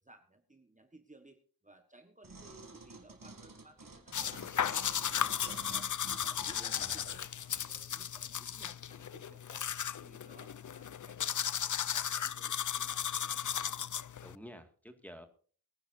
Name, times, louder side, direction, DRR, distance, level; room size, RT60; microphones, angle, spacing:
voice 1, 0.0-5.9 6.2-9.6 9.9-13.8, right 2 dB, 20° right, 6 dB, 1.4 m, -60 dB
sound 1, 2.2-7.7 8.3-8.4, right 3 dB, 65° right, 2.5 m, -51 dB
sound 2, 4.1-14.3, left 9 dB, 60° left, 0.5 m, -35 dB
voice 2, 6.6-7.0 14.2-15.3, equal, 5° left, 6 dB, 2.1 m, -50 dB
22.5 x 9.9 x 2.7 m, 0.42 s
wide cardioid pair, 60°, 36 cm